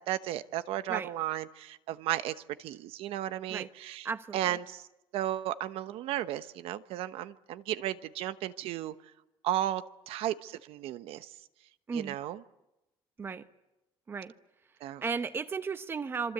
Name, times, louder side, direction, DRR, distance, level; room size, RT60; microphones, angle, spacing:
voice 1, 0.0-4.9 5.1-8.9 9.4-11.3 11.9-12.4 14.8-15.0, right 13 dB, 85° right, 1.0 m, -34 dB
voice 2, 4.0-4.6 11.9-12.2 13.2-13.5 14.1-14.3 15.0-16.3, right 5 dB, 25° right, 1.0 m, -35 dB
26.5 x 24.5 x 8.1 m
cardioid pair, 170°, 9 cm